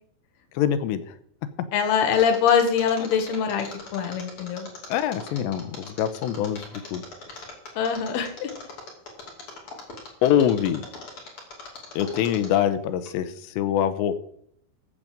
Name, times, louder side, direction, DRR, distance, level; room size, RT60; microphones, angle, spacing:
voice 1, 0.5-1.1 4.9-7.0 10.2-10.8 12.0-14.1, left 10 dB, 85° left, 11 dB, 3.0 m, -24 dB
voice 2, 1.7-3.7 3.9-4.7 7.8-8.5, left 7 dB, 70° left, 6 dB, 3.3 m, -23 dB
Mechanisms, 2.1-12.7 13.1-13.2, left 3 dB, 35° left, 3.0 m, -40 dB
14.5 x 5.2 x 7.6 m, 0.66 s
omnidirectional pair, 5.1 m